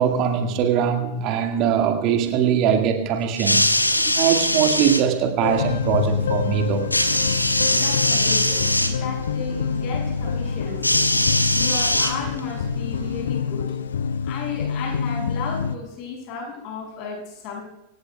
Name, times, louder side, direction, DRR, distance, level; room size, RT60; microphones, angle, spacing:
voice 1, 0.0-3.8 4.1-6.9, right 8 dB, 40° right, 4 dB, 1.9 m, -21 dB
sound 1, 3.3-5.0 6.9-8.9 10.8-12.5 13.5-13.6, left 1 dB, 85° left, 1.3 m, -21 dB
sound 2, 5.4-15.8, left 6 dB, 65° left, 0.6 m, -26 dB
sound 3, 5.4-13.2, right 2 dB, 75° right, 7.4 m, -39 dB
voice 2, 7.7-11.0 11.5-13.7 14.2-17.6, left 5 dB, 40° left, 1 dB, 6.1 m, -34 dB
26.0 x 17.0 x 2.3 m, 0.91 s
figure-of-eight pair, 90°, 0 cm